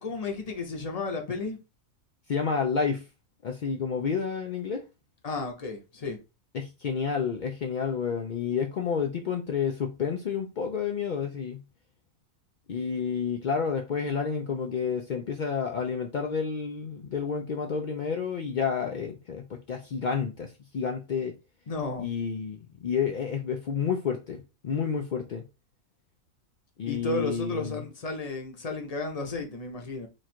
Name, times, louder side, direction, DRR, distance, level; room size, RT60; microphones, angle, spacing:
voice 1, 0.0-1.6 5.2-6.2 21.7-22.1 26.9-30.1, left 3 dB, 35° left, 0.6 m, -33 dB
voice 2, 2.3-3.1 3.4-4.9 6.5-11.6 12.7-21.4 22.0-25.4 26.8-27.8, left 6 dB, 90° left, 0.4 m, -30 dB
3.1 x 2.4 x 4.3 m
omnidirectional pair, 1.5 m